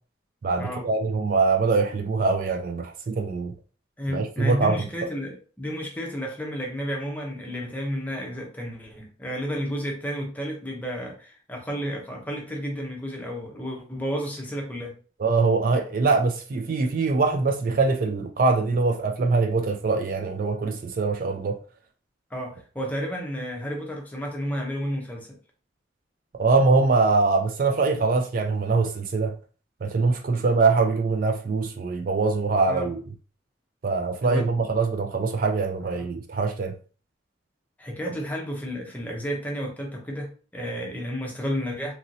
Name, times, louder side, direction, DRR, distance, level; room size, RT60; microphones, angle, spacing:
voice 1, 0.4-3.5 4.1-4.8 15.2-21.6 26.4-29.3 29.8-33.0 33.8-36.7, right 4 dB, 45° right, 0.3 m, -23 dB
voice 2, 4.0-15.0 22.3-25.3 32.7-32.9 34.2-34.5 35.8-36.1 37.8-41.9, equal, 10° left, 0.6 m, -32 dB
2.9 x 2.6 x 2.6 m
head